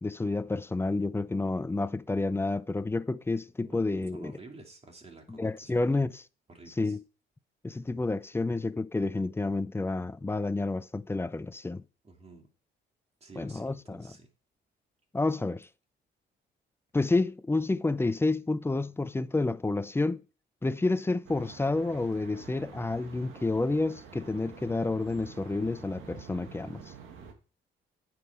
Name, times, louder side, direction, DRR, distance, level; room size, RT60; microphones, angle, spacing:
voice 1, 0.0-4.3 5.3-6.2 6.8-7.0 7.6-11.8 13.4-14.1 15.1-15.7 16.9-20.2 20.6-26.8, left 2 dB, 10° left, 0.5 m, -29 dB
voice 2, 4.1-6.0 6.5-7.0 12.0-12.5 13.2-14.3, right 3 dB, 30° right, 2.5 m, -51 dB
sound 1, 21.2-27.3, right 7 dB, 85° right, 1.7 m, -48 dB
9.2 x 6.1 x 4.7 m
cardioid pair, 90°, 20 cm